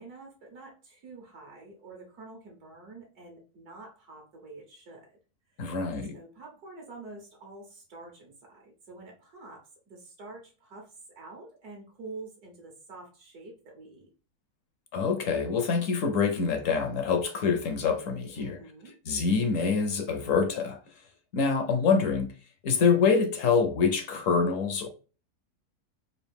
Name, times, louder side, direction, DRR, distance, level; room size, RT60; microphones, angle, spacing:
voice 1, 0.0-5.1 5.6-5.7 6.1-10.9 11.2-14.1 18.4-19.0, right 3 dB, 75° right, 1.6 m, -47 dB
voice 2, 5.6-6.1 14.9-18.6 19.1-20.8 21.3-22.3 22.6-24.9, left 5 dB, 65° left, 0.9 m, -25 dB
4.1 x 2.5 x 3.4 m
omnidirectional pair, 1.7 m